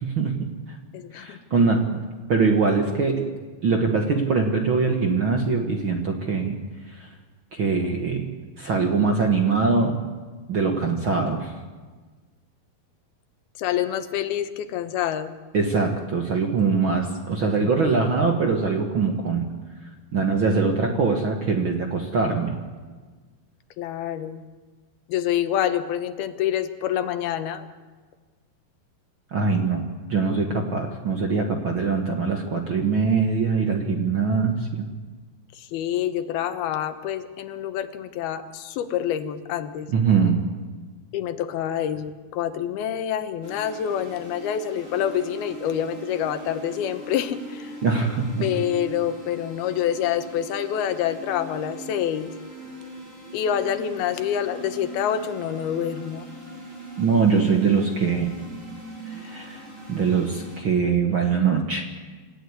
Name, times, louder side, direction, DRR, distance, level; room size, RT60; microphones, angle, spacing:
voice 1, 0.0-0.8 1.1-2.0 2.3-3.3 3.6-6.6 6.9-7.1 7.5-8.3 8.6-10.0 10.5-11.5 15.5-19.5 20.1-22.6 29.3-34.9 39.9-40.4 47.8-48.5 57.0-58.3 59.0-61.8, right 4 dB, 50° right, 3 dB, 1.5 m, -23 dB
voice 2, 0.9-1.4 13.6-15.3 23.8-24.4 25.1-27.7 35.7-39.9 41.1-47.4 48.4-52.3 53.3-56.2, left 10 dB, 85° left, 10 dB, 3.1 m, -27 dB
sound 1, 43.4-60.6, right 2 dB, 35° right, 6.3 m, -40 dB
27.0 x 14.5 x 9.7 m, 1.4 s
omnidirectional pair, 4.3 m